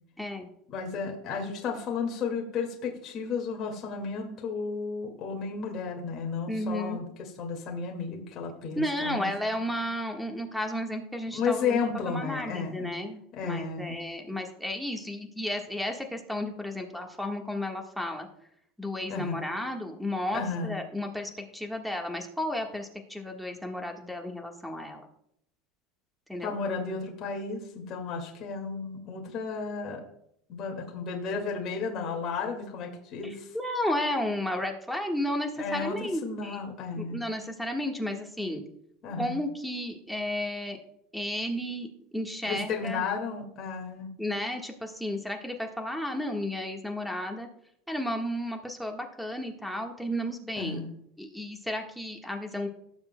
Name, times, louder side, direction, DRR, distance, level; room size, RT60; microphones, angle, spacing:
voice 1, 0.2-0.5 6.5-7.0 8.7-11.8 12.0-18.3 18.8-25.0 26.3-26.5 33.2-36.7 36.9-38.6 39.2-40.8 41.1-43.0 44.2-47.5 47.9-50.8 51.2-52.7, left 1 dB, ahead, 1 dB, 1.4 m, -33 dB
voice 2, 0.7-9.3 11.3-12.9 13.3-14.0 19.1-19.4 20.3-20.7 26.4-30.0 30.5-33.5 35.6-37.2 39.0-39.4 42.5-44.1 50.6-50.9, left 5 dB, 45° left, 1 dB, 2.0 m, -33 dB
18.5 x 7.2 x 2.2 m, 0.74 s
supercardioid pair, 125°, 0 cm